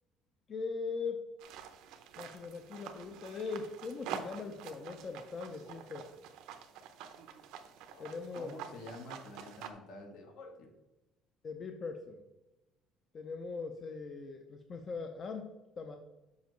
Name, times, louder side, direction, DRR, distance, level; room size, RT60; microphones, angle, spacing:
voice 1, 0.5-1.2 2.2-6.2 8.0-8.5 11.4-12.2 13.1-16.0, left 4 dB, 30° left, 5 dB, 0.5 m, -41 dB
sound 1, 1.4-9.7, right 8 dB, 75° right, 0.6 m, -47 dB
voice 2, 7.9-10.7, left 2 dB, 70° left, 4 dB, 1.3 m, -49 dB
7.1 x 5.1 x 3.1 m, 0.99 s
cardioid pair, 155°, 0 cm